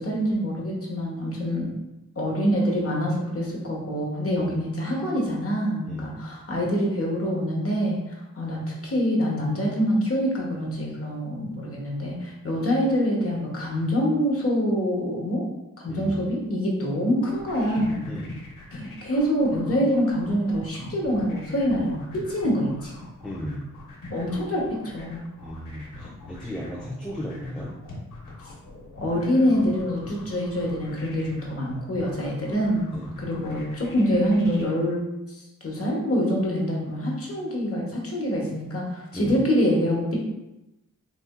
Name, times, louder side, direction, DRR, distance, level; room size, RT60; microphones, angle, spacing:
voice 1, 0.0-1.7 2.2-8.0 8.4-15.4 15.8-18.0 18.8-22.9 24.1-25.3 29.0-32.9 33.2-35.0 35.6-40.2, equal, 45° left, -2 dB, 1.2 m, -25 dB
voice 2, 15.9-16.3 18.1-18.4 23.2-23.6 25.4-27.8 32.9-33.2 39.1-39.4, equal, 5° left, -4 dB, 0.6 m, -35 dB
sound 1, 17.2-34.6, left 2 dB, 75° left, 1.0 m, -43 dB
4.0 x 2.6 x 2.2 m, 0.95 s
cardioid pair, 55°, 34 cm